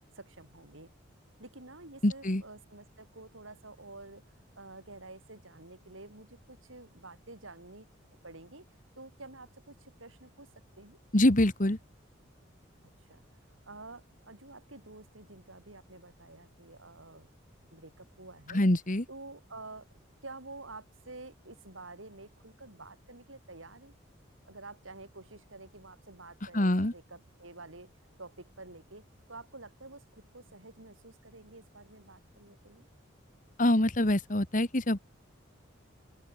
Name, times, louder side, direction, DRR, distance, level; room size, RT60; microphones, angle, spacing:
voice 1, 0.1-0.9 1.4-4.2 4.6-7.9 8.2-8.7 9.0-10.5 10.8-11.0 13.1-13.2 13.6-17.3 17.7-18.6 19.1-19.9 20.2-23.9 24.5-27.9 28.2-32.9, right 2 dB, 85° right, 6.2 m, -49 dB
voice 2, 2.0-2.4 11.1-11.8 18.5-19.1 26.5-26.9 33.6-35.0, left 1 dB, 40° left, 1.8 m, -25 dB
open air
head